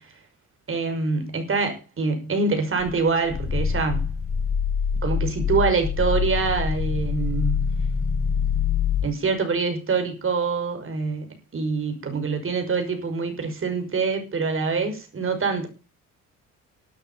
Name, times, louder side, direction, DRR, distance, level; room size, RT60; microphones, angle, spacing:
voice 1, 0.7-4.1 5.0-7.6 9.0-15.7, right 4 dB, 45° right, 5.6 m, -25 dB
Growling, 2.8-9.1, left 7 dB, 50° left, 3.3 m, -25 dB
12.5 x 9.4 x 7.0 m
cardioid pair, 90°, 30 cm